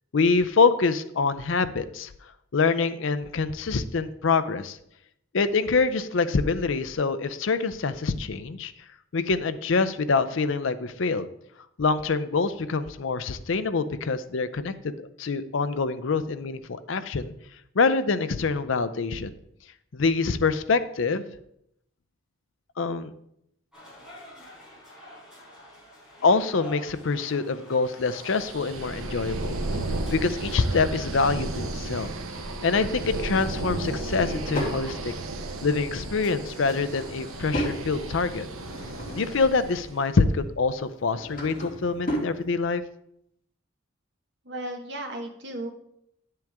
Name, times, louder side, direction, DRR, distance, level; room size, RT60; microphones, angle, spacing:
voice 1, 0.1-2.1 2.5-4.8 5.3-8.7 9.1-11.3 11.8-17.3 17.8-19.3 19.9-21.3 22.8-23.1 26.2-29.6 30.1-32.1 32.6-35.1 35.6-38.5 39.2-42.8, left 4 dB, 65° left, 13 dB, 0.5 m, -25 dB
sound 1, 23.7-38.0, left 1 dB, 5° right, 4.3 m, -50 dB
sound 2, 28.2-39.9, right 2 dB, 80° right, 0.9 m, -34 dB
Drawer open or close / Wood, 33.9-34.8 36.5-37.8 38.3-39.5 40.8-42.3, equal, 45° left, 2.6 m, -34 dB
voice 2, 44.4-45.7, right 1 dB, 55° right, 3 dB, 1.4 m, -35 dB
10.5 x 7.6 x 3.5 m, 0.75 s
head